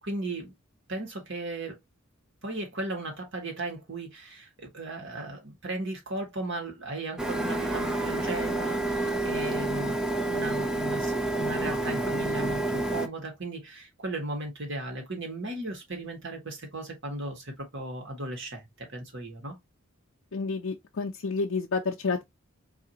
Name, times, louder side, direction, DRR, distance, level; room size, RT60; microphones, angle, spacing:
voice 1, 0.0-0.5 0.9-1.8 2.4-19.5, right 2 dB, 60° right, 1.8 m, -36 dB
Printer, 7.2-13.1, right 2 dB, 5° right, 0.5 m, -29 dB
voice 2, 20.3-22.2, left 4 dB, 75° left, 0.6 m, -30 dB
4.8 x 2.8 x 2.9 m
head